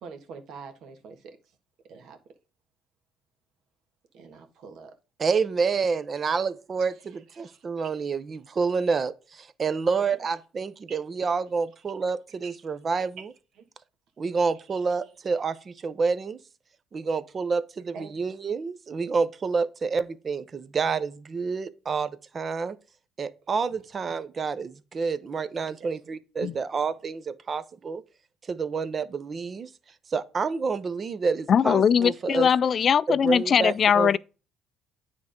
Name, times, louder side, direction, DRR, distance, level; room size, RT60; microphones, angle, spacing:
voice 1, 0.0-1.4 1.9-2.2 4.1-5.0 6.8-8.0 10.0-10.3 10.9-11.0 11.8-11.9 12.4-12.5 13.0-13.3 13.6-13.7 14.7-15.1 17.9-18.1 23.7-23.8 25.6-26.0 26.4-26.6, right 5 dB, 65° right, 1.6 m, -46 dB
voice 2, 5.2-13.2 14.2-16.4 16.9-22.8 23.2-28.0 28.5-29.7 30.1-32.5 33.2-34.2, right 5 dB, 35° right, 0.7 m, -28 dB
voice 3, 31.5-34.2, left 7 dB, 40° left, 0.3 m, -21 dB
9.2 x 3.6 x 5.1 m
cardioid pair, 110°, 0 cm